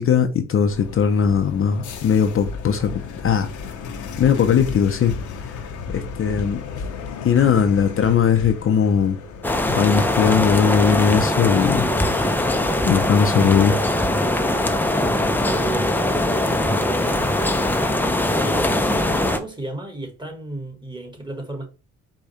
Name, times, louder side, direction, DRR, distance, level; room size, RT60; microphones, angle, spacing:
voice 1, 0.0-3.5 4.2-5.1 5.4-5.6 5.9-6.6 7.2-9.2 9.7-11.8 12.8-13.8, left 7 dB, 45° left, 0.6 m, -19 dB
sound 1, 0.7-17.8, left 5 dB, 75° left, 0.9 m, -36 dB
sound 2, 9.4-19.4, left 1 dB, 5° left, 0.6 m, -21 dB
voice 2, 15.4-16.0 16.8-17.3 18.3-21.7, right 2 dB, 15° right, 1.4 m, -33 dB
4.9 x 2.3 x 4.1 m
cardioid pair, 90°, 30 cm